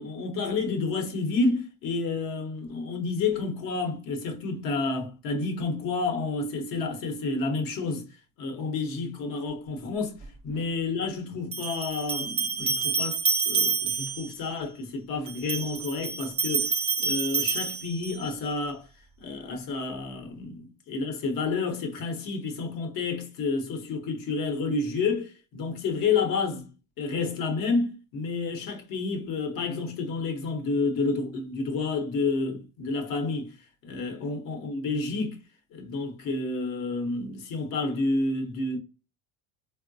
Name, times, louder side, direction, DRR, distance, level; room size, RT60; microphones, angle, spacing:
voice 1, 0.0-8.1 8.4-10.2 10.4-18.9 19.2-26.7 27.0-33.5 33.8-35.4 35.7-38.8, left 3 dB, 55° left, 0.9 m, -30 dB
sound 1, 10.2-10.3 11.5-14.3 15.3-18.3, right 5 dB, 15° right, 0.3 m, -28 dB
3.7 x 2.1 x 2.6 m
cardioid pair, 135°, 40 cm